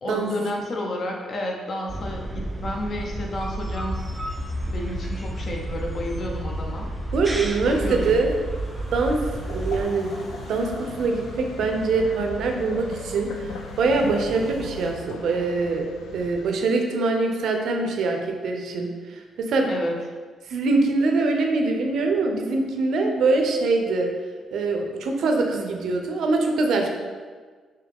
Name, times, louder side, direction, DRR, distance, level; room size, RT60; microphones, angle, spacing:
voice 1, 0.0-4.1 4.7-6.9 7.6-8.2 19.7-20.0, left 1 dB, 50° left, 0 dB, 0.6 m, -31 dB
sound 1, 1.9-9.8, right 1 dB, 10° right, 0.4 m, -31 dB
sound 2, 3.9-14.9, equal, 30° left, 1.4 m, -42 dB
voice 2, 7.1-8.3 8.9-9.2 9.4-10.1 10.5-13.3 13.8-15.9 16.1-19.7 20.5-24.1 24.5-26.9, right 3 dB, 70° right, 3 dB, 0.5 m, -23 dB
sound 3, 9.5-16.5, left 4 dB, 80° left, 0.3 m, -39 dB
3.7 x 2.7 x 3.5 m, 1.5 s
cardioid pair, 90°, 0 cm